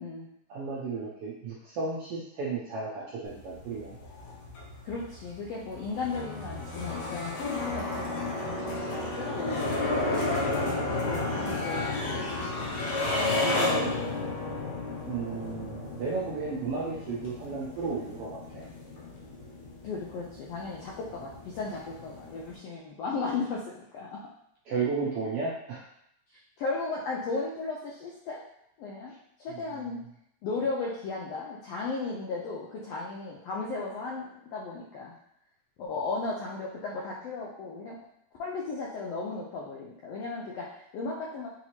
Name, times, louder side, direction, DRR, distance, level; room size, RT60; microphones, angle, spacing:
voice 1, 0.5-4.0 13.3-13.9 15.1-18.6 24.7-25.8 29.5-29.6, right 4 dB, 75° right, -6 dB, 1.4 m, -33 dB
sound 1, 3.2-22.6, left 2 dB, 70° left, 2.2 m, -33 dB
voice 2, 4.8-12.5 19.8-24.2 26.3-28.4 28.8-29.1 29.4-30.0 30.4-35.1 35.8-38.0 38.4-41.5, left 3 dB, 85° left, -3 dB, 1.4 m, -36 dB
5.8 x 2.7 x 3.0 m, 0.74 s
omnidirectional pair, 3.5 m